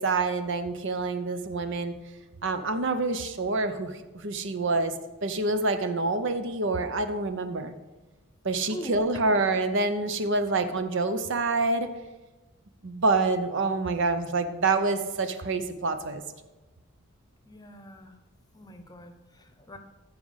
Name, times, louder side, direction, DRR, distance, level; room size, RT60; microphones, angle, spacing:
voice 1, 0.0-1.9 2.4-4.9 5.2-7.7 8.4-11.9 12.8-16.2, right 3 dB, 60° right, 9 dB, 0.8 m, -27 dB
voice 2, 17.5-18.2 18.5-19.8, left 1 dB, 20° left, 7 dB, 0.9 m, -43 dB
14.5 x 5.0 x 5.6 m, 1.1 s
head